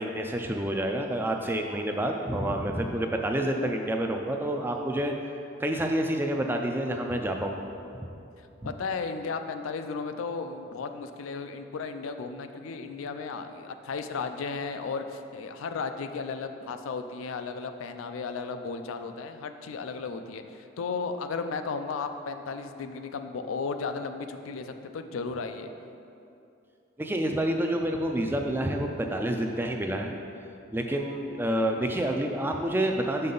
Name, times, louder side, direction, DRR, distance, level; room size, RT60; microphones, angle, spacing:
voice 1, 0.0-5.1 5.6-7.6 7.9-8.1 8.6-8.7 27.0-30.1 30.7-33.3, right 1 dB, 10° right, 3 dB, 0.3 m, -28 dB
voice 2, 8.4-25.7, left 4 dB, 85° left, 8 dB, 0.4 m, -35 dB
6.5 x 5.5 x 3.8 m, 2.7 s
head